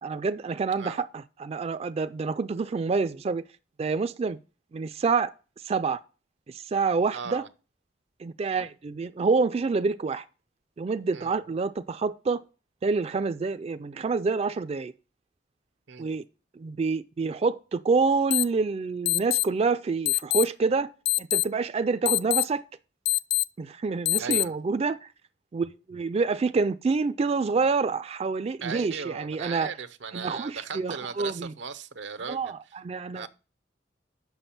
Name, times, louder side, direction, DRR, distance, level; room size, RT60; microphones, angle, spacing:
voice 1, 0.0-3.4 3.8-4.4 4.7-5.3 5.6-6.0 6.5-7.4 8.2-10.2 10.8-12.4 12.8-14.9 16.0-16.2 16.6-20.9 21.2-22.6 23.6-25.1 25.5-29.7 30.1-31.5 32.3-33.3, right 4 dB, 35° right, 0.3 m, -27 dB
voice 2, 7.1-7.5 11.1-11.5 15.9-16.2 24.2-24.6 28.6-32.5 33.1-33.3, right 5 dB, 90° right, 0.7 m, -37 dB
sound 1, 18.3-18.4 19.0-19.4 20.0-20.4 21.0-21.4 22.0-22.4 23.0-23.4 24.0-24.4, left 18 dB, 85° left, 0.4 m, -23 dB
7.1 x 5.8 x 5.7 m
head